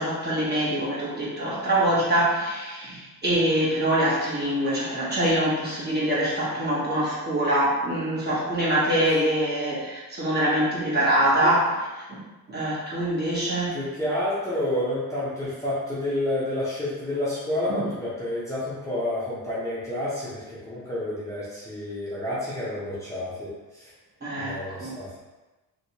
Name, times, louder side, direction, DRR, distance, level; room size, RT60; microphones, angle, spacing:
voice 1, 0.0-11.8 12.1-12.2 12.5-13.7 17.7-17.9 24.2-24.5 24.8-24.9, right 1 dB, 30° right, -8 dB, 1.1 m, -24 dB
voice 2, 13.7-23.9 24.4-25.2, left 1 dB, 10° left, -11 dB, 0.7 m, -29 dB
2.9 x 2.8 x 2.8 m, 1.2 s
cardioid pair, 135°, 36 cm